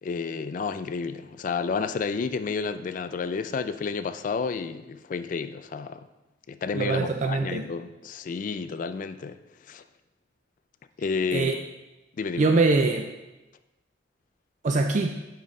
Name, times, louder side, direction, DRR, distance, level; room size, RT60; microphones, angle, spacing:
voice 1, 0.0-6.1 6.5-9.4 9.7-9.8 11.0-11.5 12.2-12.5, left 5 dB, 45° left, 11 dB, 0.3 m, -31 dB
voice 2, 6.7-7.7 11.3-11.6 12.4-13.1 14.6-15.2, right 3 dB, 40° right, 5 dB, 0.4 m, -23 dB
7.3 x 5.3 x 3.7 m, 1.0 s
head